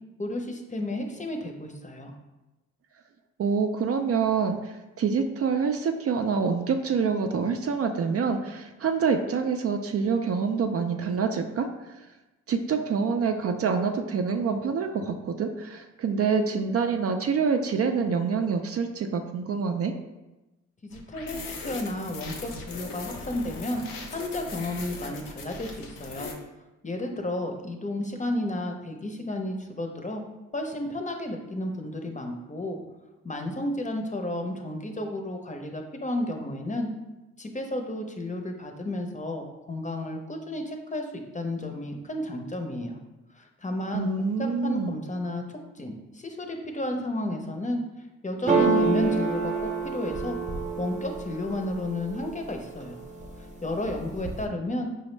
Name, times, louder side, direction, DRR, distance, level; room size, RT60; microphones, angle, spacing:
voice 1, 0.2-2.1 20.8-23.8 24.1-26.3 26.8-30.3 30.5-32.8 33.2-36.9 37.4-43.0 43.4-44.1 44.4-47.8 48.2-50.4 50.8-53.0 53.6-54.9, left 1 dB, 25° left, 3 dB, 0.7 m, -32 dB
voice 2, 3.4-12.0 12.5-19.9 43.9-45.0, right 5 dB, 45° right, 5 dB, 0.4 m, -26 dB
sound 1, 20.9-26.3, left 3 dB, 85° left, 0.7 m, -39 dB
sound 2, 48.5-52.3 52.8-53.4 53.7-54.5, right 4 dB, 20° right, 0.8 m, -27 dB
5.1 x 2.0 x 3.2 m, 1.1 s
supercardioid pair, 50°, 32 cm